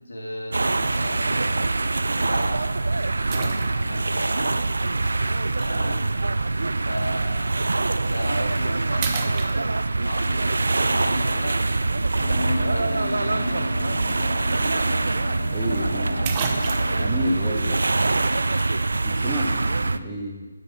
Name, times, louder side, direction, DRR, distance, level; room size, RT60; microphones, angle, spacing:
voice 1, 0.1-1.7 2.1-2.6 3.3-4.6 5.6-6.0 6.7-7.4 8.0-9.7 10.0-11.6 12.1-13.6 13.8-14.0 15.8-16.3 19.4-19.7, left 1 dB, 80° left, -1 dB, 2.1 m, -34 dB
sound 1, 0.5-20.0, right 3 dB, 75° right, 0.4 m, -24 dB
sound 2, 0.8-1.1 1.8-1.9 3.3-4.1 5.6-5.7 7.9-8.1 8.5-8.7 9.0-10.1 14.2-14.3 14.6-14.7 15.8-15.9 16.2-17.1, right 6 dB, 25° right, 0.5 m, -32 dB
sound 3, 12.2-17.5, left 3 dB, 50° left, 0.6 m, -35 dB
voice 2, 15.5-16.5 17.0-17.8 19.0-20.5, right 1 dB, 10° right, -2 dB, 0.9 m, -30 dB
8.5 x 4.8 x 5.7 m, 1.3 s
figure-of-eight pair, 160°, 0 cm